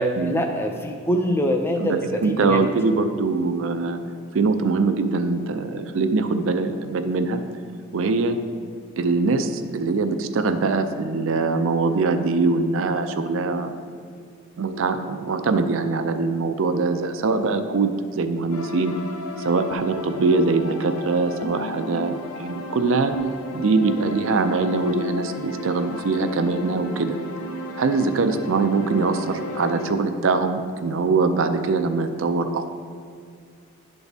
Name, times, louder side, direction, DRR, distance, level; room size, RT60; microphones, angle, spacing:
voice 1, 0.0-2.6, equal, 10° left, 3 dB, 0.5 m, -24 dB
voice 2, 1.8-4.0 4.3-7.4 7.9-8.4 9.0-13.7 14.6-18.9 19.4-23.1 23.5-27.2 27.8-32.7, right 3 dB, 60° right, 8 dB, 0.4 m, -23 dB
sound 1, 18.5-29.9, left 1 dB, 85° left, 0.6 m, -34 dB
11.0 x 4.0 x 3.4 m, 2.1 s
head